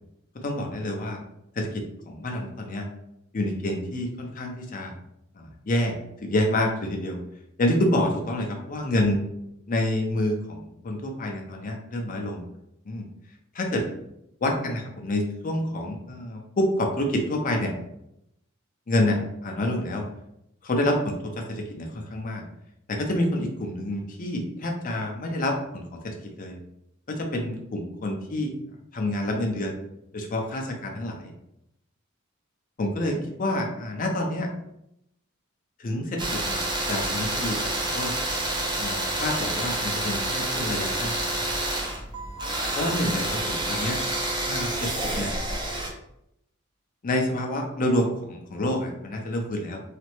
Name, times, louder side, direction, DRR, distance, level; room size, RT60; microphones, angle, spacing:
voice 1, 0.4-1.2 1.5-2.9 3.3-4.9 5.4-6.0 6.2-7.2 7.6-9.2 9.7-12.4 12.9-13.1 13.5-13.8 14.4-17.7 18.9-20.1 20.6-22.4 22.9-26.6 27.1-28.5 28.9-29.7 30.1-31.3 32.8-34.5 35.8-36.6 36.9-38.1 38.8-41.3 42.8-44.0 44.4-45.3 47.0-49.8, left 1 dB, 40° left, 2 dB, 0.5 m, -28 dB
sound 1, 36.2-45.9, right 1 dB, 20° right, 0.5 m, -28 dB
3.3 x 2.0 x 3.0 m, 0.79 s
head